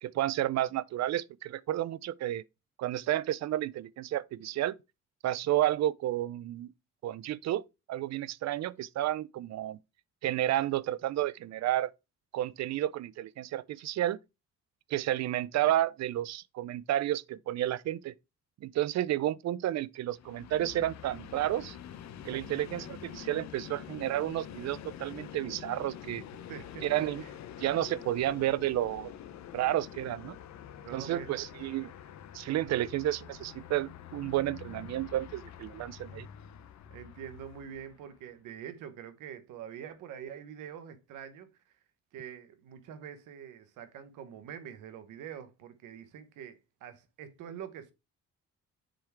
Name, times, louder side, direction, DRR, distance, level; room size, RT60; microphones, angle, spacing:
voice 1, 0.0-2.4 2.8-4.8 5.2-6.7 7.0-7.6 7.9-9.8 10.2-11.9 12.3-14.2 14.9-18.1 18.6-21.8 22.2-26.2 26.8-27.2 27.6-29.1 29.5-30.4 30.9-31.9 32.3-36.3, right 13 dB, 60° right, 0.5 m, -31 dB
Train, 20.1-38.2, left 10 dB, 65° left, 0.8 m, -47 dB
voice 2, 26.5-26.9 27.2-27.3 30.8-31.3 36.9-41.5 42.1-47.9, right 8 dB, 90° right, 1.0 m, -45 dB
7.6 x 3.6 x 4.5 m
cardioid pair, 90°, 30 cm